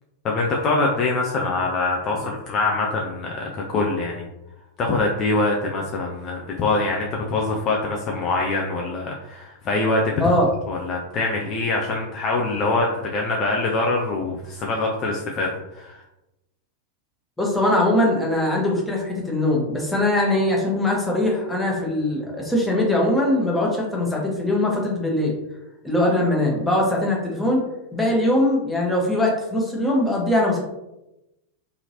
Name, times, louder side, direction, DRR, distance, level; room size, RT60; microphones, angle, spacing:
voice 1, 0.2-4.3 4.8-10.2 10.7-16.0, left 3 dB, 30° left, -1 dB, 0.4 m, -24 dB
voice 2, 17.4-25.3 25.8-27.6 27.9-30.6, left 1 dB, 5° left, -2 dB, 0.8 m, -21 dB
2.8 x 2.6 x 2.7 m, 0.93 s
figure-of-eight pair, 90°, 0 cm